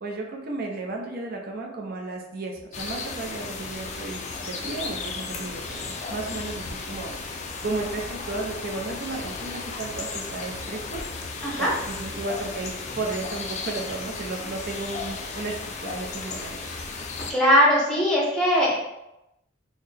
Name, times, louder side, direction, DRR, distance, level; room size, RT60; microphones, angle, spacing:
voice 1, 0.0-7.4 7.6-16.8, right 2 dB, 50° right, 0 dB, 0.6 m, -34 dB
sound 1, 2.7-17.3, left 4 dB, 35° left, 0.4 m, -35 dB
voice 2, 17.3-18.7, equal, 5° left, -5 dB, 1.0 m, -20 dB
3.9 x 2.1 x 3.3 m, 0.89 s
head